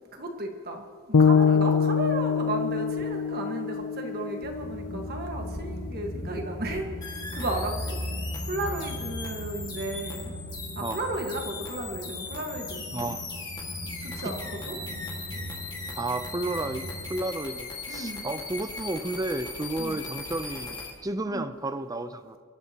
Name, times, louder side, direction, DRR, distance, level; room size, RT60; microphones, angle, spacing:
voice 1, 0.1-8.0 8.5-10.4 10.7-12.8 14.0-14.8 17.9-18.3 19.8-20.0 21.2-21.5, right 1 dB, 45° right, 3 dB, 1.5 m, -34 dB
sound 1, 1.1-5.3, left 6 dB, 85° left, 0.6 m, -24 dB
sound 2, 4.4-17.1, equal, 60° left, 1.6 m, -38 dB
sound 3, 7.0-20.9, left 4 dB, 20° left, 1.8 m, -39 dB
voice 2, 12.9-13.3 14.2-14.3 16.0-22.4, right 2 dB, 15° right, 11 dB, 0.5 m, -32 dB
23.0 x 13.0 x 2.9 m, 2.1 s
head